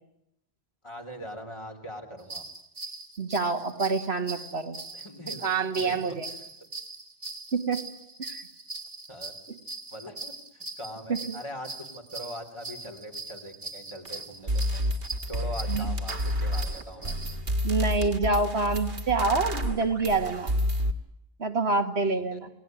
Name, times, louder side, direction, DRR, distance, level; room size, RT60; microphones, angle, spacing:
voice 1, 0.8-2.5 4.9-6.2 9.1-9.3 9.9-14.8 15.3-17.1 22.0-22.4, equal, 30° left, 4 dB, 3.5 m, -41 dB
sound 1, 2.2-17.4, right 3 dB, 45° right, 1.9 m, -41 dB
voice 2, 3.2-4.8 5.4-6.3 7.5-7.9 8.2-8.5 9.5-9.6 11.1-11.4 15.7-15.9 17.6-20.5 21.4-22.5, right 3 dB, 85° right, 6 dB, 2.4 m, -27 dB
sound 2, 14.1-14.2 14.5-20.9, equal, 65° right, 2.0 m, -29 dB
28.5 x 19.0 x 9.3 m, 0.83 s
omnidirectional pair, 1.0 m